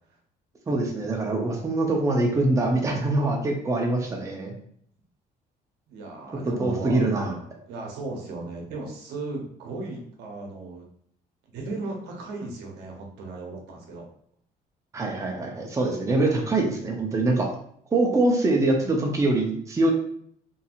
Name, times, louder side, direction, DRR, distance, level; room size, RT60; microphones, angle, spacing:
voice 1, 0.7-4.5 6.6-7.3 14.9-17.5 17.9-19.9, right 2 dB, 20° right, 0 dB, 0.6 m, -24 dB
voice 2, 5.9-10.9 11.5-14.1, right 2 dB, 80° right, 0 dB, 0.8 m, -36 dB
2.7 x 2.7 x 2.4 m, 0.63 s
cardioid pair, 110°, 17 cm